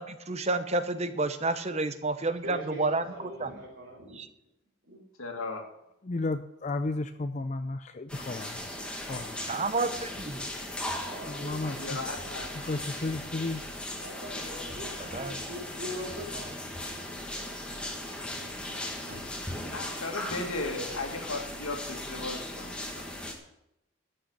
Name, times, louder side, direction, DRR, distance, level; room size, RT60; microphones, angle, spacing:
voice 1, 0.0-3.0 3.4-3.5 4.2-4.3 9.5-10.5 15.0-15.4, right 3 dB, 30° right, 10 dB, 0.8 m, -30 dB
voice 2, 2.4-4.2 4.8-5.0 11.0-11.8 14.0-16.7 17.8-17.9 18.2-19.3, equal, 60° right, -7 dB, 3.8 m, -43 dB
voice 3, 5.2-5.7 11.8-12.5 19.6-23.0, left 2 dB, 85° left, 2 dB, 2.2 m, -36 dB
voice 4, 6.0-8.6 9.0-9.6 11.3-12.0 12.6-13.7, left 2 dB, 35° left, 9 dB, 0.4 m, -33 dB
sound 1, 8.1-23.3, left 1 dB, 5° left, 1.5 m, -38 dB
13.0 x 6.6 x 7.3 m, 0.84 s
head